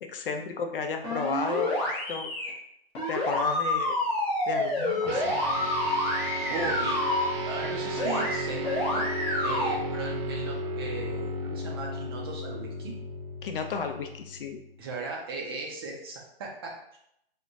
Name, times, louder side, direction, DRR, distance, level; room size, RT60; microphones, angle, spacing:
voice 1, 0.0-2.3 3.1-4.0 4.5-5.3 13.4-14.6, left 5 dB, 60° left, 6 dB, 0.6 m, -33 dB
sound 1, 1.0-2.5 3.0-7.3 8.0-8.4 8.6-9.7, left 1 dB, 20° left, 0.7 m, -28 dB
sound 2, 5.1-14.8, right 1 dB, 70° right, 0.7 m, -34 dB
voice 2, 6.4-7.0 7.4-9.1 9.4-12.9 14.8-17.0, right 3 dB, 25° right, -1 dB, 0.4 m, -37 dB
4.4 x 2.1 x 2.5 m, 0.77 s
hypercardioid pair, 145°, 30 cm